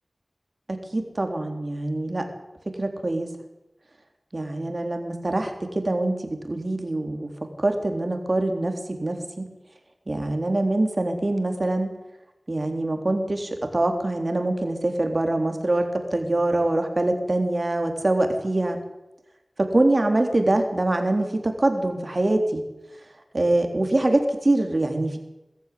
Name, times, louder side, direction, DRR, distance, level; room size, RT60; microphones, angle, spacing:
voice 1, 0.7-2.3 2.7-3.3 4.3-7.3 7.6-9.5 10.1-11.9 12.5-18.8 19.6-22.6 23.3-25.2, right 2 dB, 50° right, 5 dB, 3.6 m, -24 dB
22.5 x 13.5 x 9.6 m, 0.95 s
wide cardioid pair, 55°, 0 cm